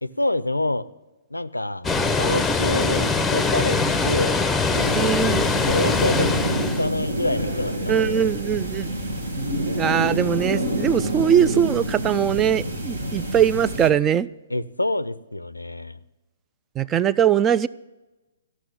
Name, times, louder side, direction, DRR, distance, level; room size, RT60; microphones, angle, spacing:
voice 1, 0.0-0.9 1.3-1.9 2.2-4.4 5.7-8.3 14.5-16.0, left 1 dB, 90° left, 17 dB, 0.5 m, -27 dB
Water, 1.8-6.9, left 4 dB, 5° left, 0.7 m, -22 dB
sound 1, 4.7-13.9, right 1 dB, 70° right, 1.7 m, -27 dB
voice 2, 5.0-5.4 6.2-6.3 7.9-8.9 9.8-14.3 16.8-17.7, right 9 dB, 20° right, 18 dB, 0.3 m, -21 dB
14.0 x 6.1 x 9.0 m, 1.1 s
figure-of-eight pair, 125°, 0 cm